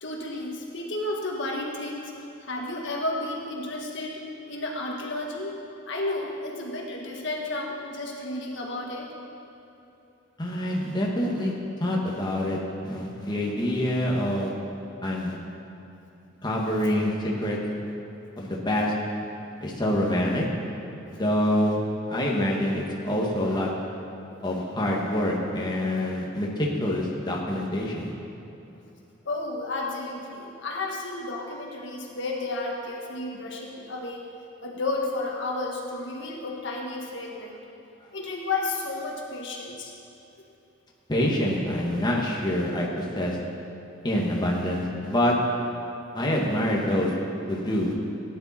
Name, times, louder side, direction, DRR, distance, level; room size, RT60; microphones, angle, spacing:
voice 1, 0.0-2.1 2.4-4.2 4.5-5.6 5.9-9.1 29.2-34.2 34.6-37.6 38.1-39.9, left 2 dB, 70° left, -1 dB, 1.6 m, -32 dB
voice 2, 10.4-11.5 11.8-12.6 12.8-14.5 15.0-15.4 16.4-17.6 18.4-18.9 19.6-20.4 21.1-21.8 22.1-23.7 24.4-28.1 41.1-43.4 44.0-45.3 46.1-47.1 47.5-47.9, left 1 dB, 25° left, -3 dB, 1.6 m, -26 dB
16.5 x 10.0 x 4.3 m, 2.9 s
head